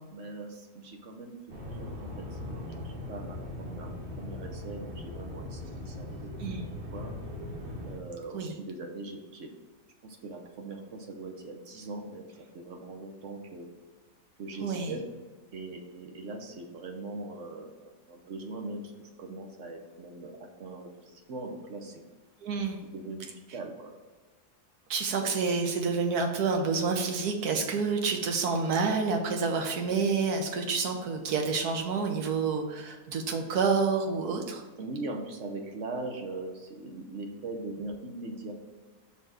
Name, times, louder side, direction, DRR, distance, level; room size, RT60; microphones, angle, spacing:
voice 1, 0.1-6.3 6.9-7.1 7.8-9.5 10.0-12.3 12.5-13.7 14.4-15.0 15.5-18.9 19.2-22.0 22.9-23.9 34.8-38.5, right 2 dB, 55° right, 3 dB, 1.0 m, -41 dB
sound 1, 1.5-8.0, left 1 dB, 35° right, 1.3 m, -40 dB
voice 2, 14.6-14.9 22.4-22.8 24.9-34.6, right 4 dB, 75° right, 4 dB, 1.4 m, -28 dB
5.7 x 4.2 x 4.8 m, 1.3 s
omnidirectional pair, 1.7 m